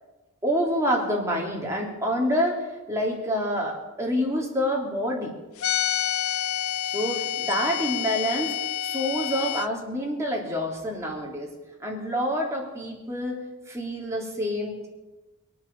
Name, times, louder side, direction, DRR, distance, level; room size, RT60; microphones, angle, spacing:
voice 1, 0.4-5.3 6.8-11.5 11.8-13.4 13.7-14.9, equal, 15° right, -2 dB, 3.2 m, -27 dB
sound 1, 5.6-9.7, left 10 dB, 65° left, 0.4 m, -28 dB
22.0 x 9.4 x 7.0 m, 1.1 s
head